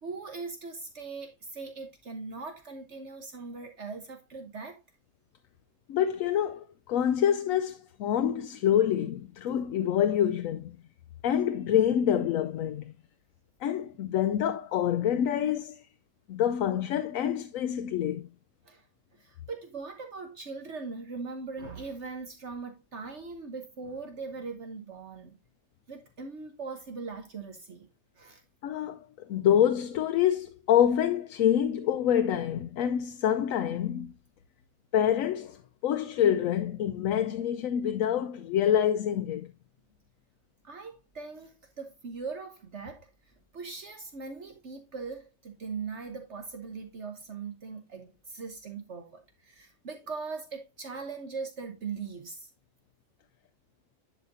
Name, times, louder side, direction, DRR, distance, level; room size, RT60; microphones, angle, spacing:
voice 1, 0.0-4.8 18.6-18.8 19.2-25.4 25.9-27.9 28.2-28.4 40.6-52.5, right 4 dB, 60° right, 1.4 m, -40 dB
voice 2, 5.9-10.7 11.2-12.9 13.6-15.9 16.3-18.3 28.6-34.1 34.9-39.5, left 10 dB, 85° left, 1.0 m, -26 dB
11.0 x 5.0 x 2.6 m
omnidirectional pair, 1.4 m